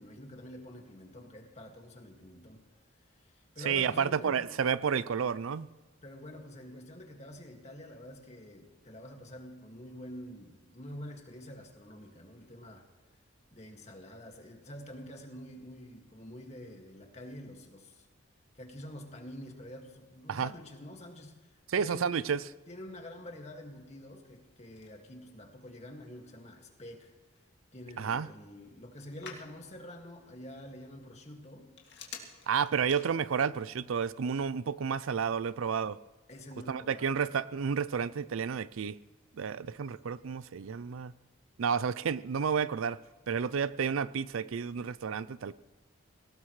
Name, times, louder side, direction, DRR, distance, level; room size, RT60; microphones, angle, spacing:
voice 1, 0.0-2.6 3.0-4.5 6.0-12.9 13.5-18.1 18.5-22.1 22.7-27.1 27.7-31.7 36.3-37.2, left 1 dB, 30° left, 2 dB, 2.1 m, -47 dB
voice 2, 3.6-5.7 20.3-20.5 21.7-22.4 28.0-28.3 32.5-36.0 36.7-39.0 39.3-41.1 41.6-43.0 43.3-45.5, right 6 dB, 80° right, 17 dB, 0.4 m, -31 dB
Telephone, 24.1-33.6, left 6 dB, 55° left, 2.5 m, -54 dB
24.5 x 18.0 x 3.2 m, 1.2 s
head